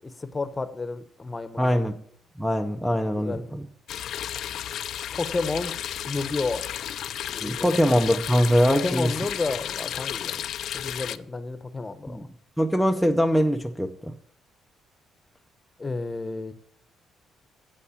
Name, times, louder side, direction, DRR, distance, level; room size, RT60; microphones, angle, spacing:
voice 1, 0.0-1.7 3.2-3.5 5.1-5.8 6.1-6.7 7.2-7.8 8.7-10.5 10.7-12.3 15.8-16.5, left 3 dB, 20° left, 0.9 m, -31 dB
voice 2, 1.6-2.0 2.4-3.6 7.4-9.1 12.1-12.2 12.6-14.1, equal, ahead, 0.6 m, -23 dB
sound 1, 3.9-11.2, left 10 dB, 70° left, 0.5 m, -33 dB
8.5 x 7.8 x 8.3 m
cardioid pair, 110°, 0 cm